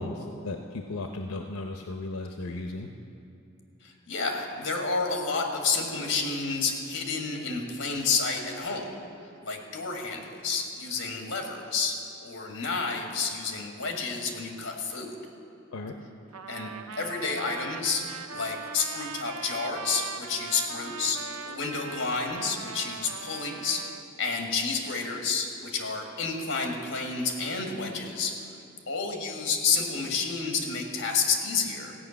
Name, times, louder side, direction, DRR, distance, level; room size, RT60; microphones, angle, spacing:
voice 1, 0.0-2.9 15.7-15.9, left 2 dB, 85° left, 4 dB, 0.7 m, -35 dB
voice 2, 3.8-8.8 9.4-15.1 16.5-16.7 17.0-18.0 18.3-23.8 24.2-28.3 28.9-31.9, left 4 dB, 60° left, 2 dB, 1.7 m, -30 dB
Trumpet, 16.3-24.0, right 6 dB, 85° right, 0.5 m, -40 dB
15.0 x 5.8 x 8.7 m, 2.7 s
head